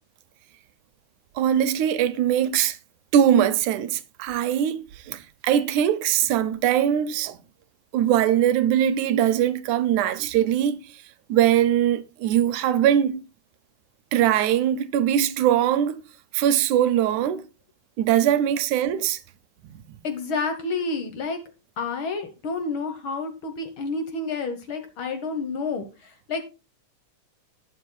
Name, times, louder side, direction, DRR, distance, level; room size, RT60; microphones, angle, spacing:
voice 1, 1.4-2.8 3.1-7.4 7.9-10.8 11.3-13.2 14.1-16.0 16.3-17.5 18.0-19.2 19.7-19.8, right 10 dB, 85° right, 2.2 m, -21 dB
voice 2, 20.0-21.4 21.8-26.4, left 4 dB, 60° left, 1.5 m, -29 dB
19.0 x 7.2 x 2.2 m
omnidirectional pair, 3.4 m